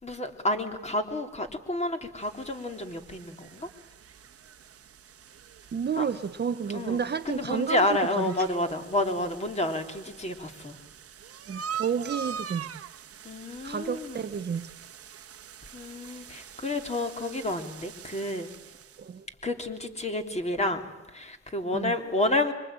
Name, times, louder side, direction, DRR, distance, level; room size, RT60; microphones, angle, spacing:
voice 1, 0.0-3.7 6.0-6.1 6.7-7.0 7.2-10.8 13.2-14.3 15.7-18.5 19.4-22.5, left 1 dB, 20° left, 3.2 m, -30 dB
sound 1, 2.2-19.2, right 8 dB, 50° right, 1.2 m, -44 dB
voice 2, 5.7-8.2 11.5-12.8 13.6-14.7 19.0-19.3 21.7-21.9, right 7 dB, 35° right, 0.9 m, -31 dB
25.5 x 23.5 x 9.0 m
cardioid pair, 90°, 30 cm